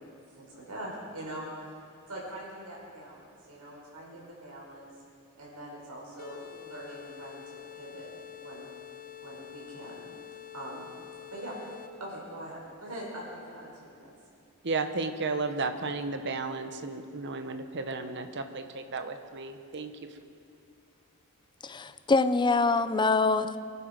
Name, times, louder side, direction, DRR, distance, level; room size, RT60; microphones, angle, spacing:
voice 1, 0.4-1.5 2.1-4.9 5.3-8.1 8.4-8.7 9.2-10.2 10.5-10.9 11.3-11.6 12.0-14.1, right 1 dB, 85° right, -3 dB, 5.2 m, -43 dB
sound 1, 6.2-12.1, left 10 dB, 40° left, 0.9 m, -47 dB
voice 2, 14.6-20.1, right 3 dB, 55° right, 8 dB, 1.0 m, -33 dB
voice 3, 21.6-23.6, left 3 dB, 20° left, 12 dB, 0.5 m, -24 dB
24.5 x 11.5 x 5.2 m, 2.4 s
head